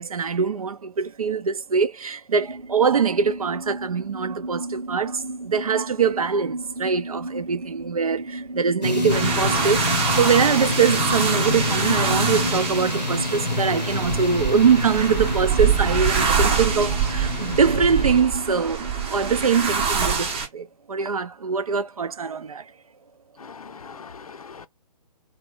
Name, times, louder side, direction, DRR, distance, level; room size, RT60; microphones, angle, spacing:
voice 1, 0.0-9.9 10.1-22.7, right 6 dB, 60° right, 0.6 m, -23 dB
sound 1, 2.4-19.9, right 2 dB, 90° right, 0.9 m, -36 dB
sound 2, 8.8-18.2, left 2 dB, 90° left, 0.8 m, -27 dB
sound 3, 9.1-20.5, right 6 dB, 20° right, 0.8 m, -25 dB
voice 2, 23.4-24.7, left 5 dB, 60° left, 0.6 m, -41 dB
3.3 x 2.3 x 4.0 m
figure-of-eight pair, 135°, 21 cm